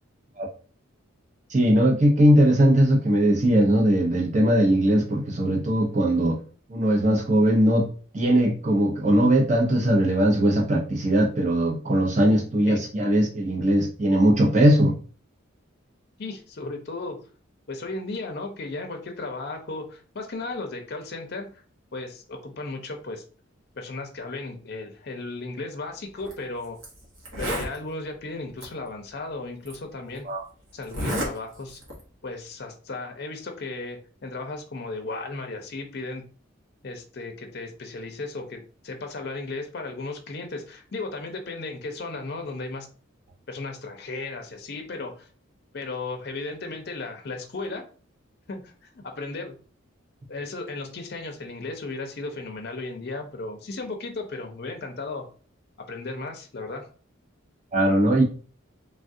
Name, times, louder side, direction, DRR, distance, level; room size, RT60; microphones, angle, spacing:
voice 1, 1.5-6.4 6.7-7.9 8.1-14.9 30.3-30.4 57.7-58.2, right 1 dB, 35° right, 0 dB, 0.6 m, -20 dB
voice 2, 16.2-17.2 17.7-21.6 21.9-23.2 23.8-26.8 27.4-30.3 30.7-31.8 32.2-36.2 36.8-42.9 43.5-45.3 45.7-47.8 48.5-49.5 50.3-55.2 55.9-56.9, left 3 dB, 50° left, 4 dB, 0.5 m, -35 dB
Zipper (clothing), 26.2-26.3 26.8-26.9 27.2-27.8 28.6-28.7 29.7-29.8 30.8-31.3 31.7-32.0, equal, 70° right, 1.1 m, -30 dB
3.3 x 2.3 x 2.6 m, 0.40 s
head